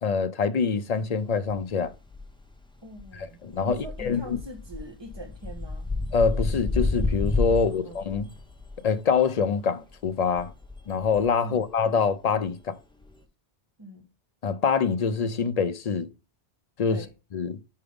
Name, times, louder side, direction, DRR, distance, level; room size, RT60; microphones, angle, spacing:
voice 1, 0.0-1.9 3.1-4.4 6.1-8.3 8.8-10.5 10.9-12.8 14.4-16.1 16.8-17.0 17.3-17.6, left 5 dB, 50° left, 0.5 m, -25 dB
sound 1, 1.5-1.6 1.8-2.6 2.9-8.9 9.9-11.4 13.0-13.1, left 3 dB, 5° left, 0.6 m, -31 dB
voice 2, 2.8-5.9 7.5-8.0 11.4-11.6 13.8-14.1 16.9-17.1, right 1 dB, 25° right, 1.4 m, -43 dB
5.5 x 4.7 x 5.1 m
omnidirectional pair, 1.2 m